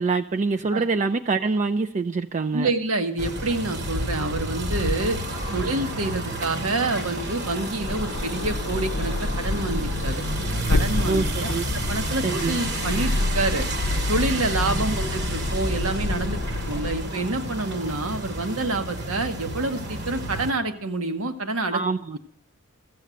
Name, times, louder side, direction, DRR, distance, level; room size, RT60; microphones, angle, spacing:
voice 1, 0.0-2.7 11.1-11.7 12.2-12.6 21.7-22.2, right 4 dB, 35° right, 7 dB, 0.4 m, -25 dB
voice 2, 2.5-5.2 5.5-10.2 10.7-13.7 14.1-16.4 16.7-21.8, right 2 dB, 75° right, 7 dB, 1.2 m, -27 dB
sound 1, 3.2-20.5, right 1 dB, 55° right, 1.4 m, -31 dB
sound 2, 7.7-17.2, left 2 dB, 60° left, 0.6 m, -28 dB
13.5 x 7.9 x 6.3 m, 0.66 s
head